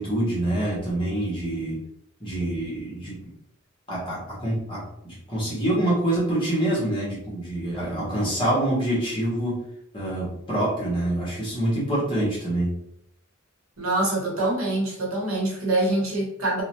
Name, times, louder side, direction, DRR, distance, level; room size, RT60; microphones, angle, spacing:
voice 1, 0.0-1.8 2.2-3.3 3.9-9.6 9.9-12.7, right 1 dB, 25° left, -6 dB, 1.0 m, -26 dB
voice 2, 13.8-16.6, right 2 dB, 80° right, -2 dB, 0.9 m, -25 dB
2.6 x 2.1 x 2.9 m, 0.75 s
head